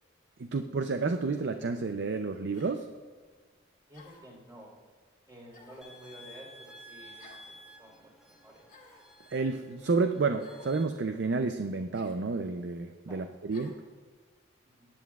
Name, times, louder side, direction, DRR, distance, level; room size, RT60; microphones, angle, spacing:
voice 1, 0.4-2.9 9.3-13.8, right 4 dB, 60° right, 7 dB, 0.5 m, -30 dB
sound 1, 1.1-1.3 2.5-2.8 3.9-4.4 5.5-5.9 7.2-7.5 8.7-9.1 10.4-10.8 11.9-12.2 13.5-13.8, left 3 dB, 45° left, 1.7 m, -55 dB
voice 2, 3.9-4.7 5.3-8.7 13.1-13.3 14.6-14.9, right 1 dB, 20° right, -2 dB, 3.3 m, -51 dB
sound 2, 5.8-10.8, equal, ahead, 1.1 m, -53 dB
18.5 x 10.5 x 2.4 m, 1.5 s
head